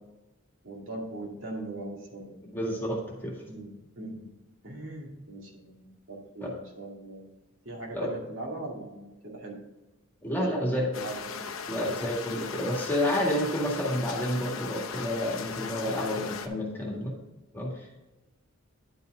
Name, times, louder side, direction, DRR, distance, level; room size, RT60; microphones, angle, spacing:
voice 1, 0.6-2.4 3.5-4.3 4.6-7.2 7.6-9.6 10.4-11.5, right 2 dB, 65° right, -2 dB, 2.2 m, -40 dB
voice 2, 2.5-3.3 6.4-6.5 7.9-8.1 10.2-10.9 11.7-17.1 17.5-18.0, left 1 dB, 10° left, -2 dB, 1.8 m, -30 dB
sound 1, 10.9-16.5, left 6 dB, 70° left, 0.8 m, -38 dB
10.0 x 5.7 x 3.8 m, 1.1 s
head